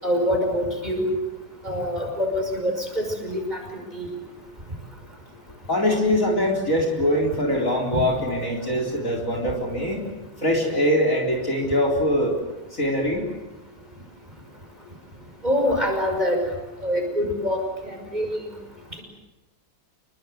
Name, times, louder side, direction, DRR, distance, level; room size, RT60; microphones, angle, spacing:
voice 1, 0.0-1.2 1.6-3.6 3.9-4.1 7.9-8.0 15.4-16.4 16.8-17.6 17.8-18.4, equal, 20° right, 2 dB, 6.0 m, -25 dB
voice 2, 5.7-10.0 10.4-12.3 12.7-13.3, left 1 dB, 40° left, 2 dB, 4.5 m, -23 dB
28.5 x 22.5 x 7.9 m, 1.0 s
omnidirectional pair, 2.2 m